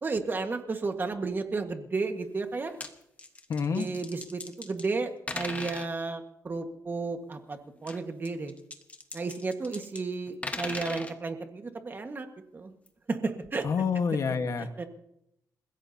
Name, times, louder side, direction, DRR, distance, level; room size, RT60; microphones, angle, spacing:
voice 1, 0.0-2.7 3.7-8.5 9.1-12.3 12.5-12.7 13.1-13.7 14.8-14.9, right 3 dB, 30° right, 6 dB, 1.6 m, -33 dB
sound 1, 2.5-2.9 3.2-4.9 5.3-5.9 7.8-10.0 10.3-11.1 12.9-13.0 13.4-13.5, left 2 dB, 20° left, 1.3 m, -39 dB
voice 2, 3.5-3.9 13.6-14.7, left 6 dB, 60° left, 7 dB, 1.4 m, -28 dB
29.5 x 16.0 x 2.8 m, 0.79 s
wide cardioid pair, 130°, 6 cm